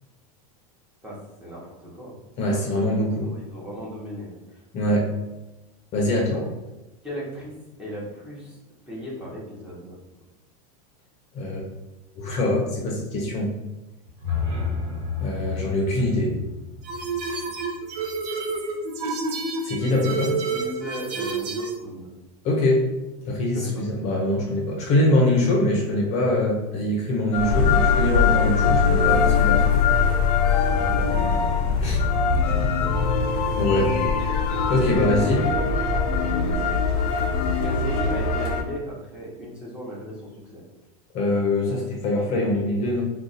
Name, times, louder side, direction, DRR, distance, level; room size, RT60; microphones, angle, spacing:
voice 1, 1.0-2.1 2.4-4.6 6.3-6.5 7.0-7.5 7.8-8.6 8.9-10.0 19.9-22.1 23.5-23.8 25.4-25.7 28.5-28.8 30.6-33.1 34.9-40.6, equal, 5° right, -7 dB, 0.9 m, -37 dB
voice 2, 2.4-3.3 4.7-5.1 5.9-6.4 11.3-11.6 12.2-13.5 15.2-16.3 19.6-20.3 22.4-22.9 23.2-29.8 31.8-32.0 33.5-33.9 34.7-35.4 41.1-43.0, left 1 dB, 35° left, -2 dB, 0.7 m, -23 dB
sound 1, 14.0-18.1, left 5 dB, 65° right, 1.3 m, -31 dB
sound 2, 16.8-21.8, right 4 dB, 85° right, 0.7 m, -29 dB
sound 3, 27.3-38.6, left 5 dB, 80° left, 0.6 m, -21 dB
2.5 x 2.3 x 4.0 m, 1.0 s
supercardioid pair, 145°, 20 cm